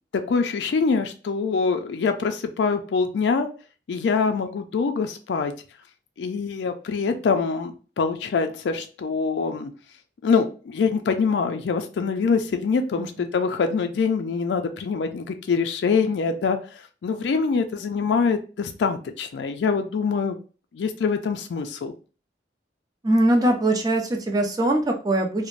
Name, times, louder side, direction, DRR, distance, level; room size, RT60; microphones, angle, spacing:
voice 1, 0.3-3.5 3.9-5.5 6.2-9.7 10.2-20.4 20.7-21.9, left 5 dB, 75° left, 6 dB, 0.3 m, -24 dB
voice 2, 23.0-25.5, right 1 dB, 20° right, 2 dB, 0.5 m, -21 dB
2.5 x 2.0 x 3.0 m, 0.36 s
head